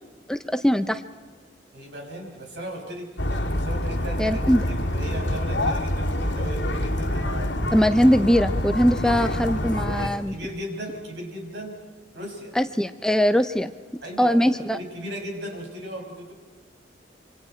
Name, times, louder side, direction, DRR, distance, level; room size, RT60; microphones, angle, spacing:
voice 1, 0.3-1.0 4.2-4.6 7.7-10.3 12.6-13.7 14.2-14.8, equal, 5° left, 9 dB, 0.6 m, -21 dB
voice 2, 1.7-3.2 3.5-7.6 8.9-9.1 9.6-9.7 9.9-11.8 12.1-12.5 14.0-16.3, right 1 dB, 70° right, 1 dB, 5.9 m, -37 dB
sound 1, 3.2-10.1, left 1 dB, 80° left, 2.3 m, -26 dB
27.0 x 26.0 x 4.5 m, 1.4 s
head